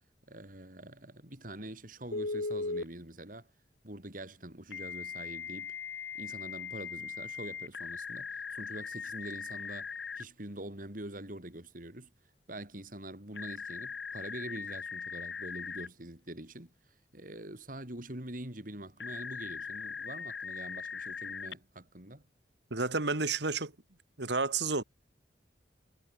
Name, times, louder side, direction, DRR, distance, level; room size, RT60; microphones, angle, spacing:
voice 1, 0.3-3.5 3.8-5.8 6.1-12.1 12.5-16.7 17.1-22.2, right 1 dB, 50° right, 4.5 m, -45 dB
Telephone, 2.1-2.9 4.7-10.2 13.3-15.9 19.0-21.5, left 5 dB, 90° left, 2.6 m, -39 dB
voice 2, 22.7-23.7 24.2-24.8, right 4 dB, 75° right, 2.4 m, -30 dB
head